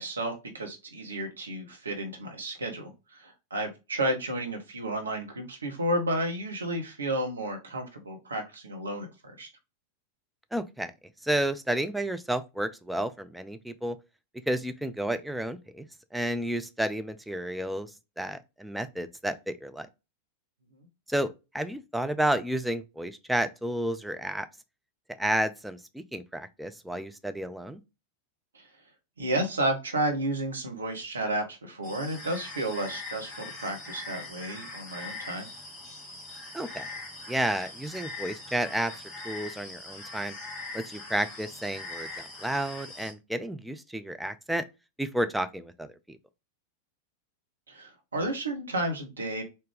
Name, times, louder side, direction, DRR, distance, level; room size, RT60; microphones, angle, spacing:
voice 1, 0.0-9.1 9.4-9.5 28.5-28.6 29.2-35.5 47.7-49.4, right 1 dB, 75° right, 1.2 m, -32 dB
voice 2, 10.5-10.9 11.2-14.0 14.5-15.9 16.1-17.9 18.2-19.9 21.1-24.5 25.2-27.8 36.5-36.9 37.3-38.9 39.2-40.3 40.7-44.6 45.0-46.2, right 1 dB, 5° right, 0.4 m, -31 dB
sound 1, 31.8-43.1, left 3 dB, 30° left, 1.9 m, -42 dB
4.3 x 2.6 x 3.4 m
figure-of-eight pair, 90°, 0 cm